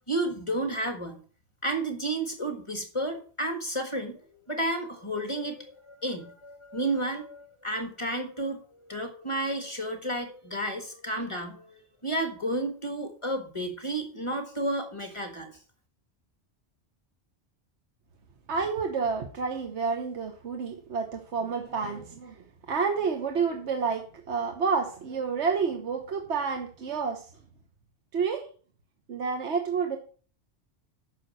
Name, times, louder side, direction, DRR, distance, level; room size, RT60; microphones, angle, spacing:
voice 1, 0.1-1.2 1.6-4.2 4.5-15.5, right 1 dB, 25° left, 5 dB, 1.6 m, -32 dB
voice 2, 18.5-27.3 28.1-28.5 29.1-30.0, right 5 dB, 75° right, 5 dB, 1.4 m, -29 dB
8.7 x 6.4 x 6.5 m, 0.41 s
omnidirectional pair, 1.2 m